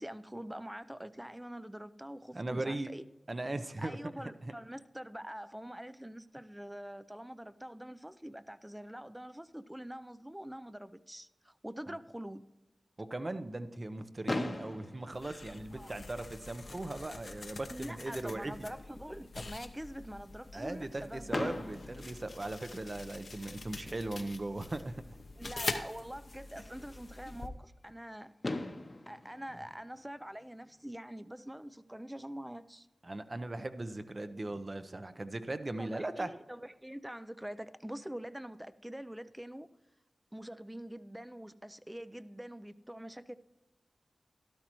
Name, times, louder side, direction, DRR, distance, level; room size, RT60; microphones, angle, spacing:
voice 1, 0.0-3.0 3.8-12.4 15.7-15.9 17.7-21.4 25.4-28.3 29.1-32.9 35.8-39.7 40.3-43.4, equal, 10° right, 14 dB, 0.5 m, -45 dB
voice 2, 2.3-2.9 3.3-4.0 4.4-4.5 11.9-12.0 13.0-18.5 20.5-25.0 33.0-36.3, right 2 dB, 40° right, 10 dB, 0.8 m, -38 dB
Fireworks, 14.3-16.3 17.1-17.2 17.4-17.6 17.9-18.0 21.3-23.1 24.8-24.9 28.0-28.1 28.4-30.7, left 2 dB, 45° left, 1.0 m, -40 dB
sound 1, 15.1-27.5, left 3 dB, 65° left, 0.9 m, -45 dB
13.0 x 12.0 x 3.1 m, 1.1 s
cardioid pair, 50°, 0 cm